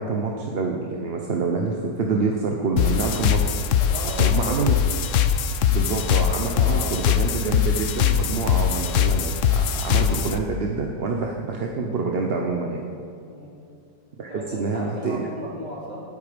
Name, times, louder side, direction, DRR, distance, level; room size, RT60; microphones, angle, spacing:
voice 1, 0.0-3.5 4.2-4.7 5.7-12.8 14.2-15.3, right 4 dB, 45° right, 1 dB, 0.9 m, -27 dB
sound 1, 2.8-10.4, left 8 dB, 65° left, 0.8 m, -21 dB
voice 2, 3.8-4.7 6.3-6.9 13.3-13.6 14.3-16.0, equal, 25° right, -5 dB, 3.5 m, -35 dB
18.5 x 8.5 x 5.2 m, 2.5 s
omnidirectional pair, 1.8 m